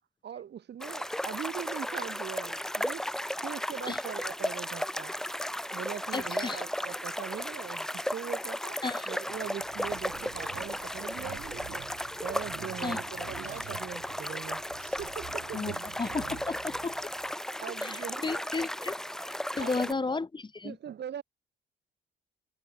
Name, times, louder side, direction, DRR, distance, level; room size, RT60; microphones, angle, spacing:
voice 1, 0.2-3.0 3.4-5.1 5.7-8.8 9.1-11.9 12.2-14.6 15.0-15.8 17.6-18.5 19.6-19.9 20.6-21.2, right 9 dB, 60° right, 3.1 m, -41 dB
sound 1, 0.8-19.9, equal, ahead, 0.7 m, -35 dB
voice 2, 6.1-6.6 8.8-9.1 12.8-13.0 15.5-15.7 16.0-17.0 17.8-19.0 19.6-20.8, left 3 dB, 25° left, 1.8 m, -33 dB
sound 2, 9.3-17.3, right 15 dB, 80° right, 0.9 m, -48 dB
open air
cardioid pair, 90°, 20 cm